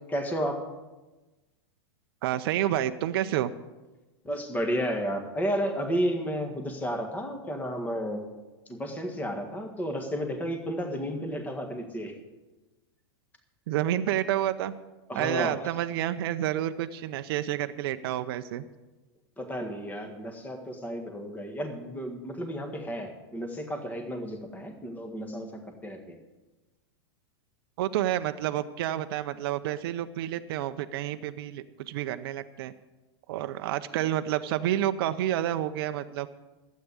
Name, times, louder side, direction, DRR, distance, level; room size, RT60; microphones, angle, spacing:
voice 1, 0.1-0.6 4.2-8.2 8.7-12.2 15.1-15.6 19.4-26.2, equal, 10° left, 4 dB, 1.7 m, -32 dB
voice 2, 2.2-3.5 13.7-14.7 15.1-18.7 27.8-32.7 33.3-36.3, right 12 dB, 60° right, 9 dB, 0.7 m, -29 dB
12.0 x 8.5 x 8.3 m, 1.2 s
supercardioid pair, 140°, 14 cm